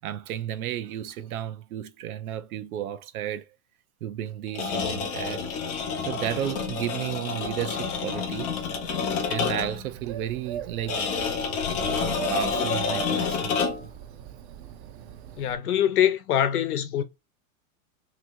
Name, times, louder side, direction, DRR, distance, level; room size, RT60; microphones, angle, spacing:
voice 1, 0.0-3.5 4.0-5.5 6.1-8.5 9.3-11.0 11.9-13.9, right 11 dB, 75° right, 0.8 m, -33 dB
sound 1, 4.5-9.8 10.9-14.0, left 6 dB, 20° left, 0.3 m, -29 dB
Bird, 7.8-15.6, right 10 dB, 40° right, 0.6 m, -40 dB
voice 2, 15.4-17.0, left 10 dB, 85° left, 0.9 m, -23 dB
3.1 x 2.6 x 4.5 m
supercardioid pair, 140°, 44 cm